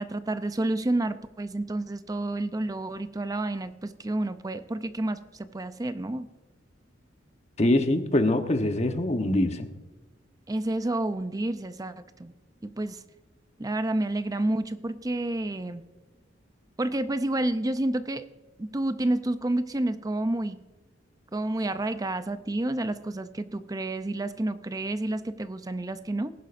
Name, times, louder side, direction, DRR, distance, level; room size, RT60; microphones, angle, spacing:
voice 1, 0.0-6.3 10.5-12.3 12.6-13.0 13.6-15.8 16.8-18.2 18.6-20.6 21.3-26.3, right 1 dB, 20° right, 11 dB, 0.5 m, -29 dB
voice 2, 7.6-9.7, left 1 dB, 35° left, 7 dB, 1.0 m, -24 dB
19.5 x 11.0 x 2.6 m, 1.2 s
head